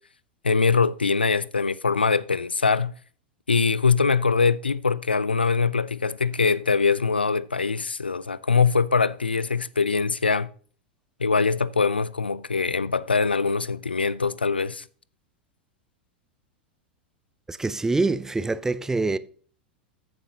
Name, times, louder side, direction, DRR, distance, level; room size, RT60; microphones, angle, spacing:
voice 1, 0.4-2.9 3.5-10.5 11.2-14.8, left 5 dB, 85° left, 0.4 m, -23 dB
voice 2, 17.5-19.2, right 3 dB, 10° right, 0.5 m, -25 dB
14.0 x 7.4 x 2.9 m
figure-of-eight pair, 90°, 5 cm